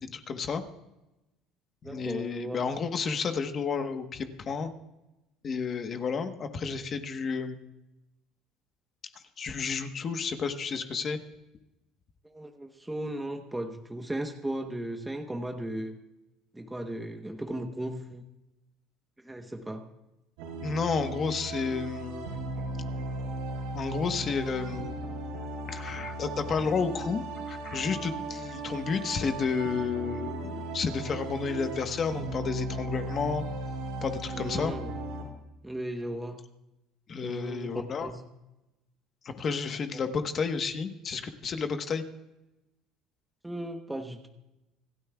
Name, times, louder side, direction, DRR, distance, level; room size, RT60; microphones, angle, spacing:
voice 1, 0.0-0.6 1.8-4.7 5.4-7.6 9.4-11.2 20.6-22.4 23.7-24.9 25.7-33.4 34.0-34.7 37.1-38.1 39.2-42.0, left 5 dB, 35° left, 7 dB, 1.1 m, -31 dB
voice 2, 1.8-2.6 12.3-16.0 16.5-18.2 19.2-19.9 34.3-34.9 35.6-36.4 37.2-38.2 39.9-40.0 43.4-44.3, right 1 dB, 5° right, 4 dB, 1.0 m, -36 dB
sound 1, 20.4-35.2, right 2 dB, 90° right, 5.4 m, -37 dB
26.5 x 12.5 x 2.3 m, 0.95 s
cardioid pair, 135°, 0 cm